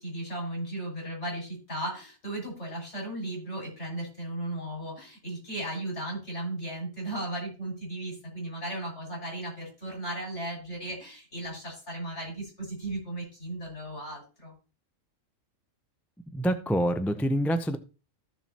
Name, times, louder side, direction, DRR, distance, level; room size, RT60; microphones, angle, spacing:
voice 1, 0.0-14.5, right 1 dB, 60° left, -1 dB, 6.3 m, -36 dB
voice 2, 16.3-17.8, equal, ahead, 9 dB, 0.4 m, -26 dB
14.5 x 7.2 x 2.9 m, 0.32 s
omnidirectional pair, 1.3 m